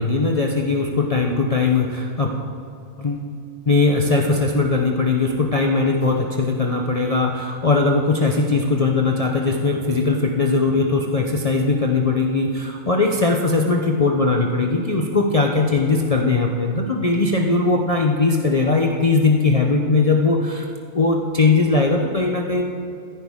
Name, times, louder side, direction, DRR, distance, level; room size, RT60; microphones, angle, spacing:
voice 1, 0.0-2.3 3.0-3.2 3.7-20.6 20.9-22.6, left 3 dB, 35° left, 0 dB, 0.7 m, -19 dB
15.0 x 10.0 x 3.6 m, 2.5 s
omnidirectional pair, 1.4 m